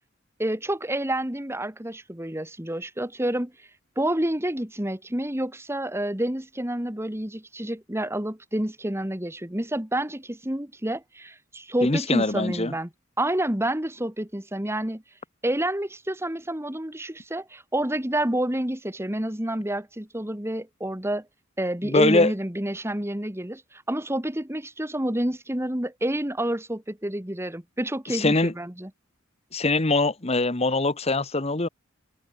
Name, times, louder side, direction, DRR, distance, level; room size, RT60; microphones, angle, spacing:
voice 1, 0.4-3.5 4.0-12.9 13.2-15.0 15.4-21.3 21.6-28.9, right 1 dB, 10° right, 1.8 m, -29 dB
voice 2, 11.8-12.7 21.8-22.3 28.1-28.5 29.5-31.7, left 2 dB, 30° left, 1.3 m, -22 dB
head